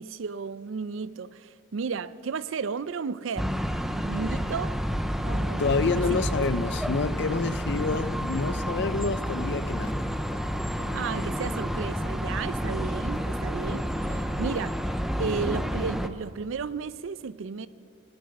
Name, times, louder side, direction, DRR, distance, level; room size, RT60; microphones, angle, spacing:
voice 1, 0.0-3.7 4.0-4.8 5.2-6.2 10.9-17.7, right 5 dB, 70° right, 0.4 m, -34 dB
sound 1, 1.8-1.9 2.6-2.7 3.4-4.6 4.9-5.2 5.5-7.1 7.4-14.7, left 2 dB, 70° left, 1.3 m, -49 dB
sound 2, 3.4-16.1, equal, ahead, 0.4 m, -30 dB
voice 2, 5.6-10.1, left 4 dB, 55° left, 0.5 m, -28 dB
19.0 x 10.5 x 6.5 m
head